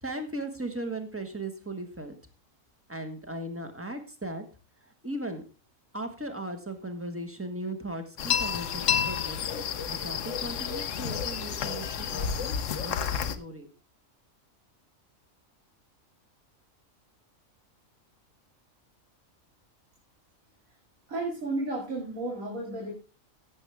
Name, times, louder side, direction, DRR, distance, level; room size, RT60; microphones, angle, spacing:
voice 1, 0.0-2.1 2.9-4.4 5.0-5.4 5.9-13.7, right 1 dB, 10° right, 6 dB, 1.4 m, -37 dB
sound 1, 8.2-13.4, left 8 dB, 70° left, 1.1 m, -30 dB
voice 2, 21.1-22.9, right 2 dB, 85° right, -2 dB, 2.8 m, -32 dB
15.0 x 7.5 x 3.4 m, 0.32 s
omnidirectional pair, 1.4 m